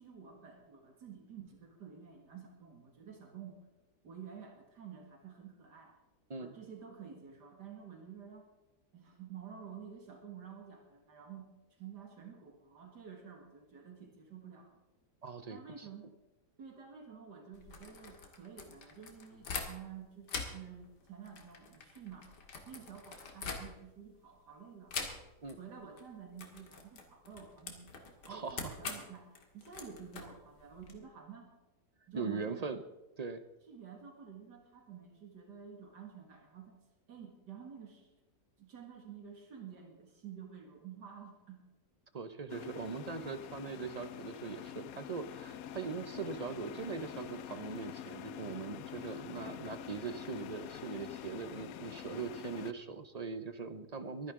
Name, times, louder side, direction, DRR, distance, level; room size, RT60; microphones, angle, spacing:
voice 1, 0.0-3.6 4.0-5.9 6.4-8.5 8.9-11.5 11.8-14.8 15.5-16.1 16.6-22.3 22.7-25.0 25.6-27.9 28.3-31.5 32.1-32.8 33.7-36.8 37.1-38.1 38.6-41.6 49.0-49.6, right 7 dB, 80° right, 2 dB, 2.5 m, -50 dB
voice 2, 15.2-15.9 25.4-25.6 28.2-28.8 32.1-32.8 33.2-33.4 42.1-54.3, right 5 dB, 50° right, 10 dB, 0.4 m, -41 dB
sound 1, 17.5-20.0 20.2-24.1 24.9-25.6 25.8-26.0 26.4-31.0, left 4 dB, 85° left, 2.4 m, -44 dB
sound 2, 42.5-52.7, left 10 dB, 70° left, 0.9 m, -46 dB
23.5 x 10.5 x 3.7 m, 1.1 s
omnidirectional pair, 1.8 m